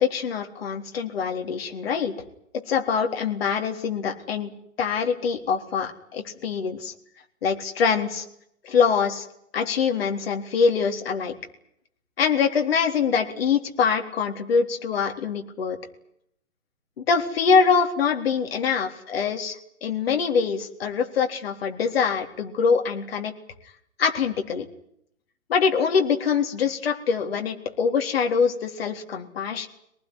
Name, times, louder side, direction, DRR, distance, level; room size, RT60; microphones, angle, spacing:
voice 1, 0.0-2.1 2.7-4.5 4.8-6.9 7.4-8.3 8.6-9.3 9.5-11.3 12.2-15.8 17.1-23.3 24.0-24.7 25.5-29.7, left 6 dB, 45° left, 5 dB, 3.8 m, -24 dB
25.0 x 19.0 x 9.9 m, 0.72 s
hypercardioid pair, 160°, 41 cm